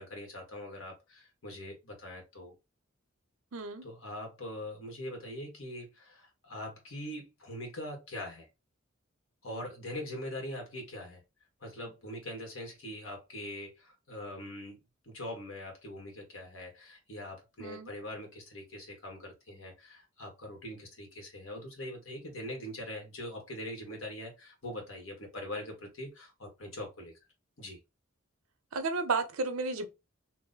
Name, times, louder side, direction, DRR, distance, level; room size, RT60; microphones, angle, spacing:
voice 1, 0.0-2.6 3.8-8.5 9.4-11.2 11.6-27.1 27.6-27.8, left 1 dB, 65° left, 1.4 m, -42 dB
voice 2, 3.5-3.8 17.6-17.9 28.7-29.9, right 3 dB, 90° right, 0.6 m, -32 dB
2.9 x 2.0 x 3.8 m
head